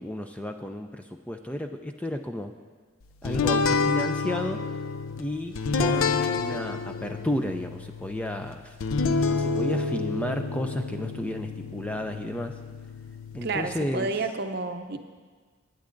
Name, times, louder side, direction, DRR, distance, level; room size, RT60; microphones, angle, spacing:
voice 1, 0.0-2.5 3.2-4.6 5.2-8.8 9.4-12.6 13.3-14.1, left 1 dB, 5° left, 5 dB, 0.3 m, -32 dB
sound 1, 3.3-13.9, left 4 dB, 80° left, 0.5 m, -29 dB
voice 2, 13.4-15.0, right 3 dB, 50° right, 7 dB, 0.6 m, -30 dB
20.0 x 9.4 x 2.6 m, 1.5 s
head